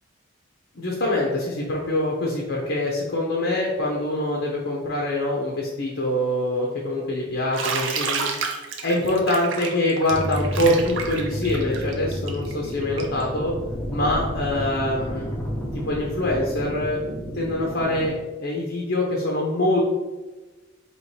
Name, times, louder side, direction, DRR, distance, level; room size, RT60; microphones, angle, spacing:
voice 1, 0.7-8.2 8.8-13.5 13.9-15.3 15.8-17.0 17.3-19.8, left 1 dB, 60° left, -2 dB, 0.7 m, -24 dB
Bathtub (filling or washing), 7.5-13.2, right 5 dB, 65° right, 0.5 m, -30 dB
sound 1, 10.1-18.1, equal, 5° left, 0.5 m, -31 dB
4.3 x 3.0 x 3.1 m, 1.2 s
head